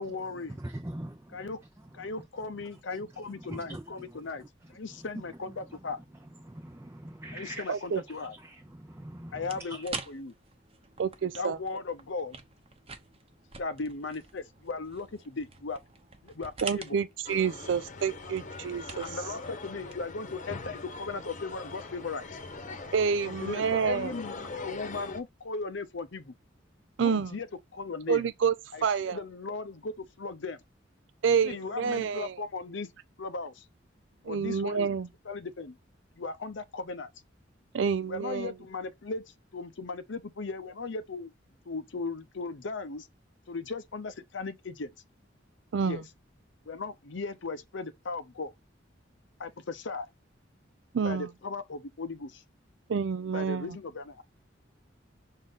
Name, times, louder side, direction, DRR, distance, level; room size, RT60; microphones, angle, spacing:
voice 1, 0.0-0.5 1.3-1.6 1.9-4.4 4.7-6.0 7.3-8.3 9.3-10.3 11.4-12.4 13.6-15.8 16.2-17.0 19.0-22.3 23.3-26.3 27.0-27.5 27.7-28.2 28.7-30.6 31.4-32.9 33.2-33.6 34.3-34.9 35.3-35.8 36.2-37.1 38.1-39.2 39.5-41.3 41.7-43.1 43.5-44.9 45.8-46.0 46.7-48.5 49.4-50.1 51.0-52.4 53.3-54.2, left 3 dB, 75° left, 0.7 m, -37 dB
voice 2, 0.6-1.5 3.4-3.8 4.1-4.2 5.0-5.1 6.4-7.8 8.4-10.0, right 1 dB, 15° right, 0.6 m, -42 dB
voice 3, 7.7-8.0 11.0-11.6 16.6-19.2 22.9-24.1 27.0-27.3 28.1-28.5 28.8-29.2 31.2-32.4 34.2-35.1 37.7-38.5 45.7-46.0 50.9-51.3 52.9-53.8, right 6 dB, 75° right, 0.4 m, -28 dB
sound 1, 9.4-20.6, right 5 dB, 30° right, 0.9 m, -47 dB
sound 2, 17.2-25.2, left 3 dB, 40° left, 1.0 m, -42 dB
6.4 x 3.7 x 3.9 m
head